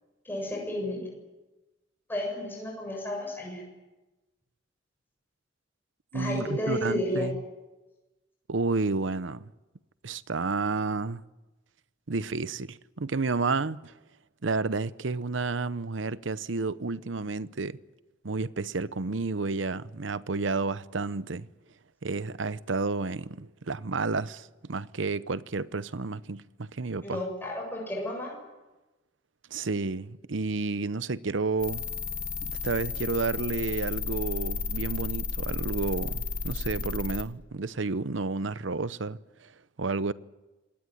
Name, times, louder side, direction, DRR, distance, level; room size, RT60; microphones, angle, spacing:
voice 1, 0.2-1.0 2.1-3.6 6.1-7.3 27.0-28.3, left 1 dB, 10° left, 7.6 m, -32 dB
voice 2, 6.1-7.4 8.5-9.5 10.0-11.2 12.1-13.9 14.4-17.8 18.2-21.5 22.0-27.2 29.5-31.9 32.4-39.5 39.8-40.1, right 3 dB, 85° right, 0.8 m, -31 dB
sound 1, 31.6-37.2, left 4 dB, 45° left, 2.5 m, -33 dB
27.0 x 19.0 x 9.5 m
head